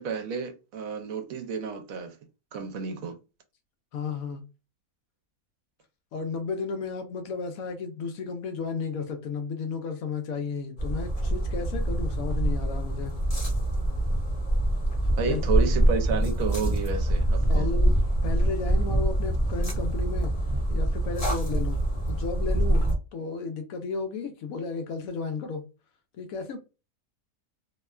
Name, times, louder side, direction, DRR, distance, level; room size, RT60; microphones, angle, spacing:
voice 1, 0.0-2.2 2.5-3.2 15.2-17.7, right 5 dB, 70° right, 0.9 m, -31 dB
voice 2, 3.9-4.4 6.1-13.2 15.3-15.4 17.5-20.3 20.7-21.8 22.1-25.6 26.2-26.6, left 5 dB, 75° left, 0.9 m, -33 dB
sound 1, 10.8-22.9, right 1 dB, 30° left, 0.8 m, -25 dB
2.8 x 2.1 x 2.2 m
omnidirectional pair, 1.5 m